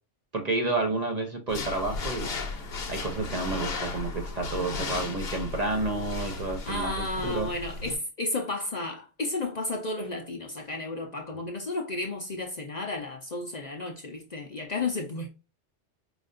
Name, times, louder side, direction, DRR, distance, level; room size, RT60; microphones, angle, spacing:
voice 1, 0.3-2.3 2.9-6.9 7.2-7.5, right 3 dB, 40° right, 0.7 m, -30 dB
sound 1, 1.5-8.0, left 4 dB, 60° left, 1.1 m, -35 dB
voice 2, 4.5-5.0 6.7-15.3, left 2 dB, 45° left, 0.7 m, -33 dB
5.0 x 2.5 x 2.5 m
omnidirectional pair, 1.2 m